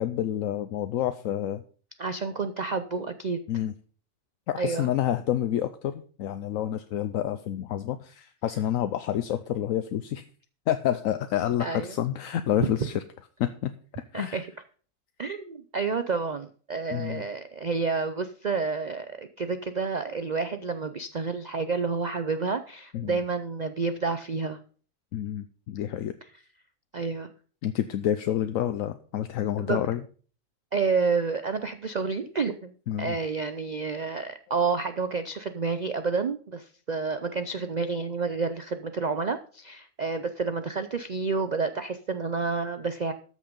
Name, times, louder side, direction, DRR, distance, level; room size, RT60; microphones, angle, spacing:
voice 1, 0.0-1.6 3.5-3.7 4.5-5.9 6.2-10.2 10.7-12.9 13.4-13.7 14.1-14.4 16.9-17.2 22.9-23.2 25.1-26.1 27.6-30.0 32.9-33.2, left 11 dB, 65° left, 10 dB, 1.0 m, -28 dB
voice 2, 2.0-3.4 4.6-4.9 11.6-11.9 12.6-12.7 14.1-14.5 15.2-24.6 26.9-27.3 29.6-29.8 30.7-32.7 33.0-43.1, right 4 dB, 75° right, 9 dB, 0.4 m, -29 dB
13.5 x 6.4 x 5.2 m, 0.42 s
omnidirectional pair, 1.6 m